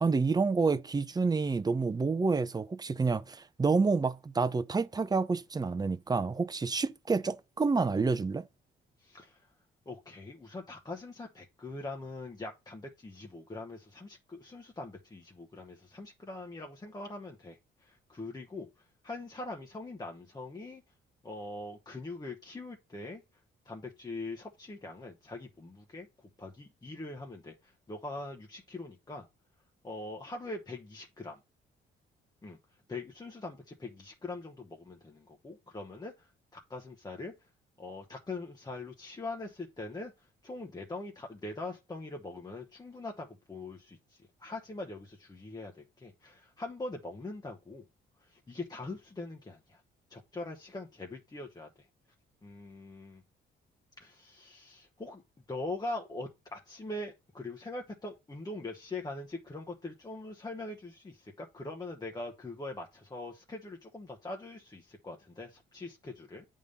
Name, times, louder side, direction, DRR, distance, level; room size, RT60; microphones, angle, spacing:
voice 1, 0.0-8.5, right 4 dB, 20° right, 0.6 m, -28 dB
voice 2, 9.0-9.5 9.9-20.8 21.2-23.2 23.6-29.3 29.8-31.4 32.4-32.6 32.9-37.3 37.8-47.8 48.2-49.8 50.1-51.7 52.4-53.2 54.0-55.2 55.5-66.5, left 2 dB, 20° left, 1.0 m, -42 dB
8.2 x 3.7 x 5.2 m
cardioid pair, 90°, 20 cm